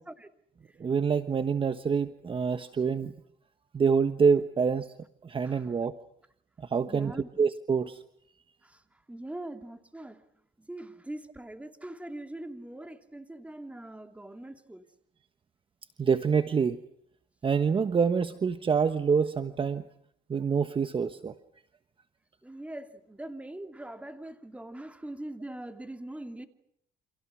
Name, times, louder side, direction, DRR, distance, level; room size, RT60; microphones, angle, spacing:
voice 1, 0.8-3.1 3.7-4.9 5.2-6.0 6.6-7.1 7.4-8.0 16.0-16.8 17.4-19.8 20.3-21.3, right 6 dB, 30° right, 10 dB, 1.3 m, -26 dB
voice 2, 5.4-5.9 6.9-7.3 8.6-8.8 9.1-10.2 10.6-14.9 22.4-26.5, right 1 dB, 10° right, 7 dB, 2.7 m, -42 dB
29.5 x 27.0 x 6.2 m, 0.69 s
cardioid pair, 110°, 17 cm